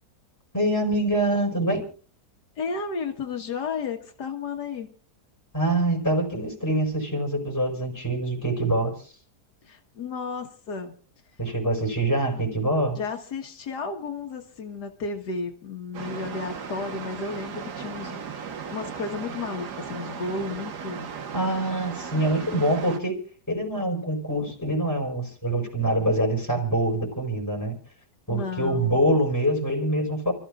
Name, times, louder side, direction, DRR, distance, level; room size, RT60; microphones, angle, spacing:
voice 1, 0.5-1.8 5.5-9.1 11.4-13.0 21.3-23.2 23.5-27.7 28.3-30.3, right 1 dB, 10° left, 0 dB, 4.8 m, -25 dB
voice 2, 2.6-4.9 9.6-10.9 13.0-18.2 18.7-21.1 22.4-22.5 24.4-24.5 28.3-29.0, left 4 dB, 85° left, 4 dB, 2.0 m, -33 dB
sound 1, 15.9-23.0, right 6 dB, 85° right, 1.9 m, -36 dB
30.0 x 14.0 x 2.5 m, 0.42 s
omnidirectional pair, 1.7 m